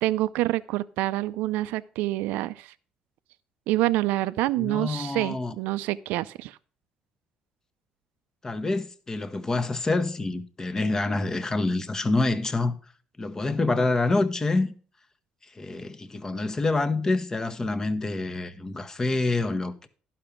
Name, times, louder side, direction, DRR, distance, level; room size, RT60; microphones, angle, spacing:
voice 1, 0.0-2.7 3.7-6.6, right 17 dB, 85° right, 0.4 m, -27 dB
voice 2, 4.6-5.5 8.4-12.8 13.2-14.7 15.5-19.9, left 2 dB, 20° left, 0.9 m, -27 dB
11.5 x 5.8 x 5.0 m
cardioid pair, 110°, 3 cm